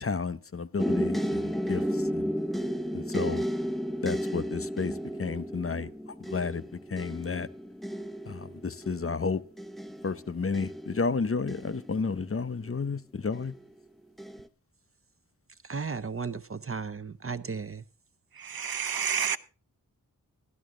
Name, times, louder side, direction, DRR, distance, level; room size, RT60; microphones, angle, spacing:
voice 1, 0.0-1.8 2.1-2.3 2.9-3.4 4.0-4.9 5.2-5.9 6.3-7.5 8.3-9.4 10.0-13.5, left 4 dB, 35° left, 0.7 m, -31 dB
sound 1, 0.8-12.6 13.3-13.8 14.2-14.4, equal, ahead, 0.8 m, -33 dB
voice 2, 15.6-17.8, right 5 dB, 35° right, 0.7 m, -35 dB
voice 3, 18.3-19.4, right 7 dB, 70° right, 0.8 m, -30 dB
12.5 x 12.5 x 3.7 m
wide cardioid pair, 85°, 37 cm